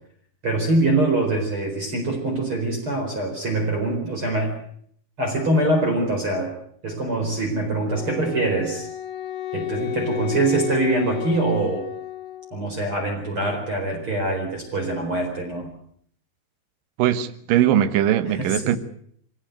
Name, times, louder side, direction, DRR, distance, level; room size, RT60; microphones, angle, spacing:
voice 1, 0.4-4.5 5.2-6.5 6.8-8.9 9.5-11.9 12.5-15.7 18.2-18.7, right 2 dB, 30° right, 4.7 m, -24 dB
Wind instrument woodwind instrument, 7.9-12.7, left 12 dB, 85° left, 3.8 m, -32 dB
voice 2, 17.0-18.8, right 11 dB, 65° right, 2.4 m, -20 dB
24.0 x 18.0 x 8.0 m
omnidirectional pair, 5.5 m